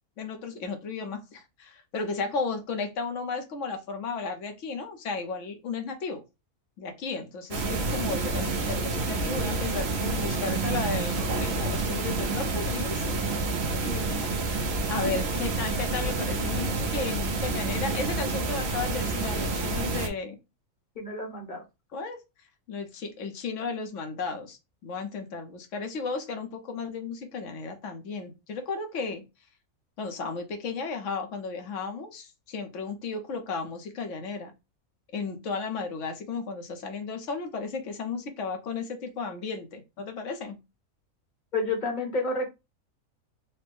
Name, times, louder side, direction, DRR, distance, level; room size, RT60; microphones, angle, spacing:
voice 1, 0.2-6.2 6.8-13.1 14.9-20.4 21.9-22.2 22.7-29.2 30.0-34.5 35.1-40.6, left 4 dB, 65° left, 1.2 m, -34 dB
sound 1, 7.5-20.1, right 3 dB, 55° right, 0.9 m, -29 dB
voice 2, 13.8-14.1 20.9-21.6 41.5-42.5, left 2 dB, 35° left, 1.0 m, -30 dB
4.2 x 2.1 x 3.4 m
omnidirectional pair, 1.5 m